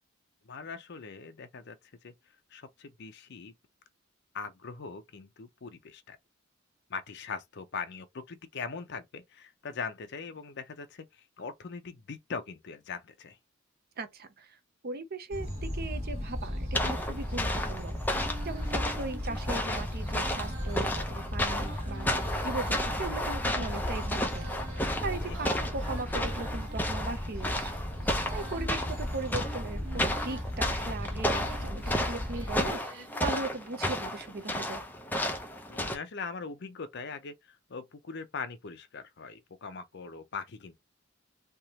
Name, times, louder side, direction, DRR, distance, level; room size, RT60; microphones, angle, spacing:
voice 1, 0.4-1.8 2.0-2.1 2.5-3.5 4.3-6.2 6.9-13.4 25.2-25.4 35.7-40.7, left 5 dB, 60° left, 0.6 m, -41 dB
voice 2, 14.0-14.6 14.8-18.0 18.4-24.5 25.0-27.8 28.3-34.8, right 3 dB, 50° right, 0.7 m, -38 dB
sound 1, 15.3-32.7, equal, 35° right, 1.4 m, -36 dB
sound 2, 16.7-36.0, left 1 dB, 10° left, 0.7 m, -33 dB
Female singing, 18.0-26.9 27.5-30.5 31.0-33.3, right 2 dB, 70° right, 1.4 m, -48 dB
3.5 x 2.9 x 2.9 m
head